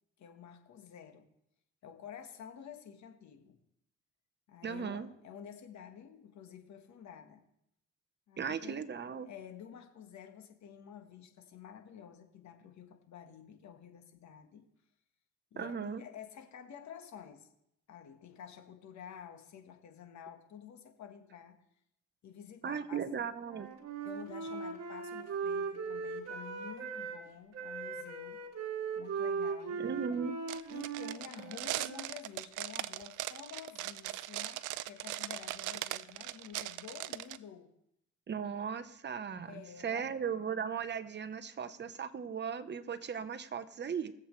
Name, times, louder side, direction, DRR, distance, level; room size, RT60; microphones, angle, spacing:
voice 1, 0.2-1.3 1.8-3.6 4.5-7.4 8.3-14.7 15.5-17.5 17.9-21.6 22.2-23.0 24.0-28.4 28.9-29.8 30.7-37.7 39.4-40.1, left 8 dB, 65° left, 6 dB, 1.5 m, -50 dB
voice 2, 4.6-5.1 8.4-9.3 15.6-16.0 22.6-23.7 29.8-30.3 38.3-44.1, right 7 dB, 35° right, 9 dB, 0.9 m, -37 dB
Wind instrument woodwind instrument, 23.4-27.2 27.5-32.1, right 5 dB, 60° right, 1.8 m, -39 dB
sound 1, 30.5-37.4, right 16 dB, 85° right, 0.5 m, -39 dB
21.0 x 7.5 x 3.2 m, 0.77 s
cardioid pair, 90°, 30 cm